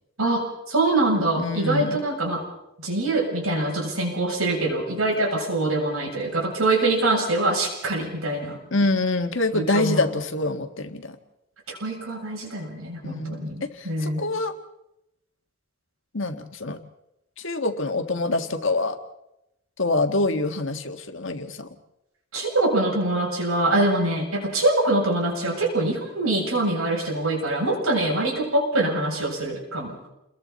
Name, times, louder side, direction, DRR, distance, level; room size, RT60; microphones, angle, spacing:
voice 1, 0.2-2.4 2.8-8.6 9.5-10.1 11.7-14.2 22.3-30.0, right 2 dB, 85° right, -1 dB, 7.9 m, -24 dB
voice 2, 1.4-2.0 8.7-11.2 13.0-13.5 13.7-14.5 16.1-16.8 17.4-19.0 19.8-21.7, left 2 dB, 65° left, 6 dB, 1.7 m, -25 dB
29.5 x 22.0 x 4.2 m, 0.86 s
head